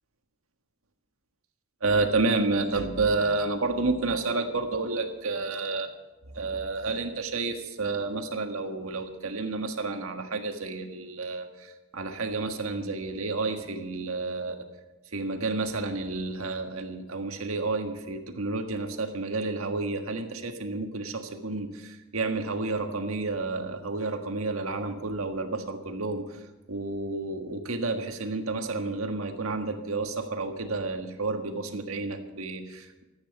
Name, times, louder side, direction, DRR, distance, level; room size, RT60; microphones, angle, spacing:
voice 1, 1.8-5.9 6.3-14.7 15.1-26.2 26.7-33.0, right 3 dB, 80° right, 5 dB, 1.6 m, -30 dB
14.0 x 8.9 x 8.3 m, 1.1 s
head